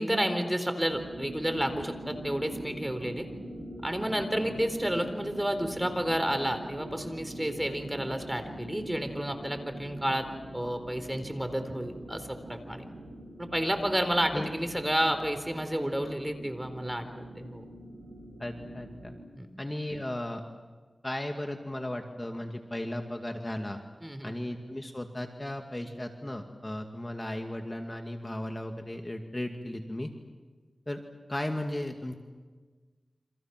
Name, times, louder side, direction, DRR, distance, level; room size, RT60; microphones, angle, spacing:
voice 1, 0.0-3.3 3.8-10.3 10.5-12.9 13.4-17.6 19.4-19.5 24.0-24.3, equal, 10° right, 7 dB, 4.0 m, -31 dB
sound 1, 0.9-19.2, right 1 dB, 80° right, 4.5 m, -44 dB
voice 2, 18.4-19.1 19.6-20.4 21.0-23.8 24.2-30.1 30.9-31.0 31.3-32.1, left 1 dB, 25° left, 3 dB, 2.3 m, -35 dB
29.5 x 26.5 x 6.1 m, 1.4 s
cardioid pair, 50°, 0 cm